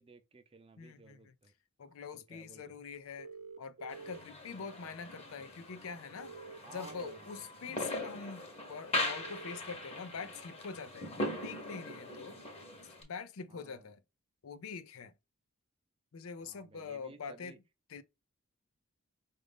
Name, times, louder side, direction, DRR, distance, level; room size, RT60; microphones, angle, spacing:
voice 1, 0.0-1.5 2.3-2.7 4.5-4.7 6.6-7.4 13.5-13.8 16.4-17.6, right 3 dB, 25° right, 0.5 m, -55 dB
voice 2, 0.8-1.3 1.8-3.3 3.6-6.3 6.7-12.4 13.0-14.0 14.4-15.1 16.1-17.6 17.9-18.0, left 5 dB, 80° left, 0.5 m, -44 dB
sound 1, 3.2-4.2 6.2-7.2 9.2-9.6, right 5 dB, 85° right, 0.7 m, -48 dB
sound 2, 3.9-13.0, left 1 dB, 30° left, 1.0 m, -40 dB
5.0 x 2.6 x 3.5 m
head